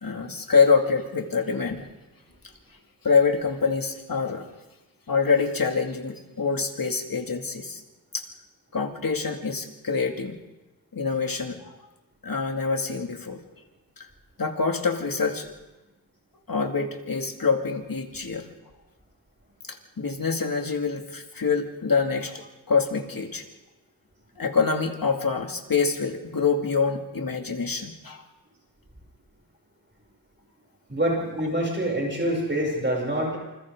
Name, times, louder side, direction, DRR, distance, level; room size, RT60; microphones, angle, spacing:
voice 1, 0.0-1.8 3.0-4.5 5.1-7.8 8.1-8.2 8.7-10.4 10.9-11.8 12.2-13.4 14.0-14.1 14.4-15.5 16.5-18.5 19.7-23.4 24.4-28.2, left 5 dB, 65° left, 3 dB, 2.6 m, -25 dB
voice 2, 30.9-33.4, right 1 dB, 30° right, -2 dB, 7.3 m, -26 dB
27.5 x 27.0 x 3.9 m, 1.1 s
wide cardioid pair, 85°, 37 cm